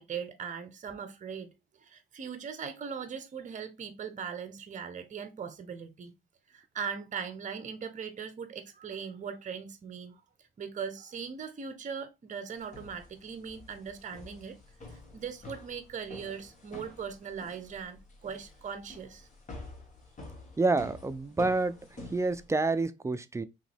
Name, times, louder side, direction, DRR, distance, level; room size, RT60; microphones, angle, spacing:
voice 1, 0.0-1.5 1.8-6.1 6.5-10.2 10.6-14.6 14.9-19.3, right 6 dB, 40° right, 0.8 m, -40 dB
sound 1, 12.6-22.8, left 2 dB, 35° left, 1.7 m, -49 dB
voice 2, 20.6-21.8 22.1-23.4, right 3 dB, 15° right, 0.4 m, -28 dB
3.7 x 3.0 x 3.3 m
cardioid pair, 90°, 20 cm